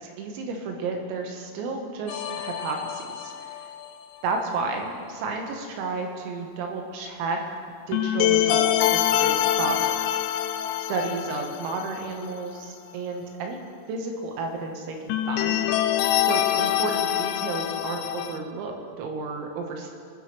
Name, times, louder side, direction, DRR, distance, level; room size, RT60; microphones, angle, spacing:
voice 1, 0.0-3.6 4.2-7.4 7.9-10.2 10.9-13.6 13.9-15.7 16.2-19.9, right 3 dB, 85° right, 2 dB, 4.1 m, -32 dB
sound 1, 2.1-3.9 7.9-12.3 12.6-12.7 15.1-18.4, left 12 dB, 85° left, 3.2 m, -25 dB
23.5 x 10.5 x 3.3 m, 2.5 s
omnidirectional pair, 6.0 m